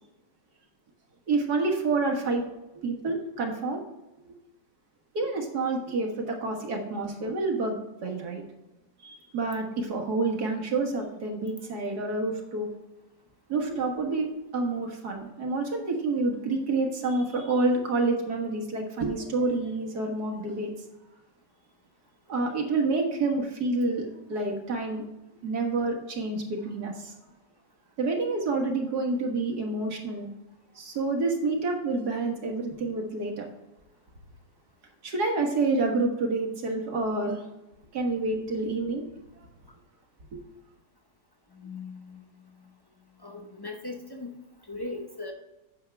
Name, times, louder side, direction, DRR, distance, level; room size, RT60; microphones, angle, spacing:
voice 1, 1.3-2.4 2.8-3.8 4.3-4.4 5.1-8.4 9.0-12.7 13.5-14.3 14.5-20.7 22.3-25.0 25.4-27.1 28.0-30.3 30.8-33.5 35.0-37.4 37.9-39.0 40.3-40.4, right 3 dB, 60° right, 1 dB, 1.9 m, -28 dB
voice 2, 41.5-42.2 43.2-44.4 44.7-45.3, left 2 dB, 40° left, 2 dB, 0.3 m, -38 dB
9.1 x 6.8 x 3.4 m, 0.99 s
omnidirectional pair, 1.9 m